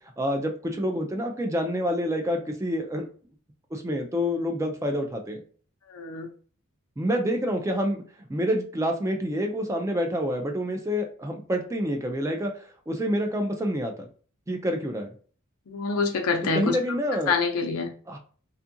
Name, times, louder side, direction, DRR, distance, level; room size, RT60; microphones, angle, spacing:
voice 1, 0.2-3.1 3.7-5.4 7.0-8.0 8.3-14.1 14.5-15.1 16.5-17.4 18.1-18.2, equal, 15° right, 0.3 m, -27 dB
voice 2, 5.9-6.3 15.7-16.7 17.3-17.9, left 4 dB, 80° left, 0.6 m, -26 dB
2.6 x 2.4 x 2.6 m
head